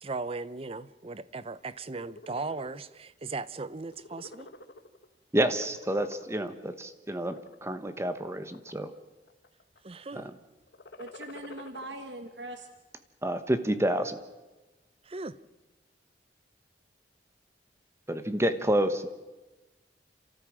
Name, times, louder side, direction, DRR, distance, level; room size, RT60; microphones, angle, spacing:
voice 1, 0.0-4.5 9.8-10.3 15.0-15.4, right 3 dB, 30° right, 0.7 m, -37 dB
sound 1, 1.8-2.8 3.3-3.5 3.8-5.1 5.4-6.5 7.2-7.6 8.2-9.0 9.3-9.8 10.6-11.9, left 3 dB, 65° left, 1.5 m, -48 dB
voice 2, 5.3-8.9 10.1-10.3 13.2-14.2 18.1-19.1, right 1 dB, 15° right, 1.0 m, -29 dB
voice 3, 11.0-12.7, right 1 dB, 75° right, 1.4 m, -41 dB
29.5 x 14.0 x 7.5 m
head